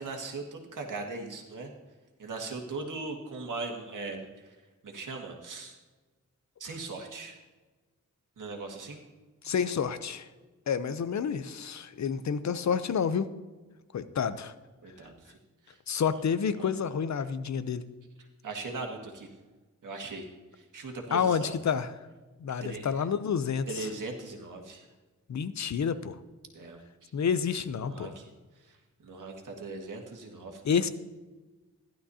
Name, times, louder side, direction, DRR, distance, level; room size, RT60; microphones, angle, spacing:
voice 1, 0.0-1.7 2.2-4.3 4.8-5.8 6.6-7.4 8.4-9.0 14.8-15.2 15.7-15.8 16.6-16.7 18.4-19.3 19.8-20.3 20.6-21.6 22.6-23.0 23.7-24.8 26.5-27.1 27.8-28.3 29.0-30.6, right 3 dB, 75° right, 2 dB, 1.9 m, -39 dB
voice 2, 9.4-10.3 10.7-13.3 13.9-14.5 15.9-17.9 21.1-21.9 22.4-23.9 25.3-26.2 27.1-28.1 30.6-30.9, left 7 dB, 60° left, 13 dB, 0.6 m, -29 dB
15.5 x 11.5 x 2.8 m, 1.2 s
wide cardioid pair, 95°, 31 cm